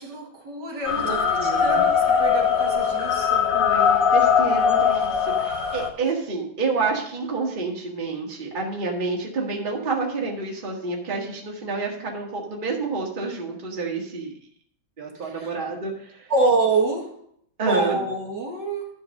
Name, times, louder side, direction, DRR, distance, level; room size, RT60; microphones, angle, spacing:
voice 1, 0.0-3.6 15.2-15.5 16.3-17.1 17.7-18.9, right 3 dB, 65° right, 0 dB, 2.3 m, -26 dB
sound 1, 0.9-5.9, left 7 dB, 50° left, 1.4 m, -21 dB
voice 2, 0.9-1.8 3.5-14.3 15.0-16.3 17.6-18.0, right 4 dB, 25° right, -1 dB, 1.7 m, -29 dB
11.5 x 4.6 x 6.4 m, 0.67 s
omnidirectional pair, 2.1 m